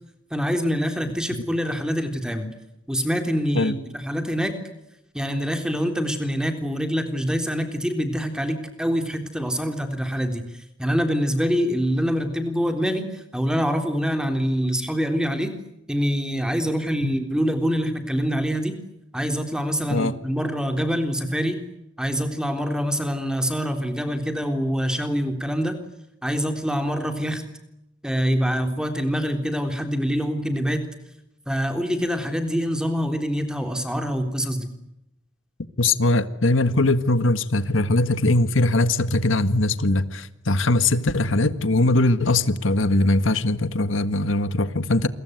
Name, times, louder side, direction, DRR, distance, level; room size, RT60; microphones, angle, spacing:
voice 1, 0.3-2.5 2.9-4.6 5.1-10.4 10.8-15.6 15.9-18.8 19.1-21.6 22.0-25.8 26.2-27.4 28.0-30.8 31.5-34.7, equal, 5° right, 3.6 m, -25 dB
voice 2, 35.8-45.1, left 2 dB, 90° left, 1.7 m, -21 dB
28.5 x 23.0 x 8.1 m
head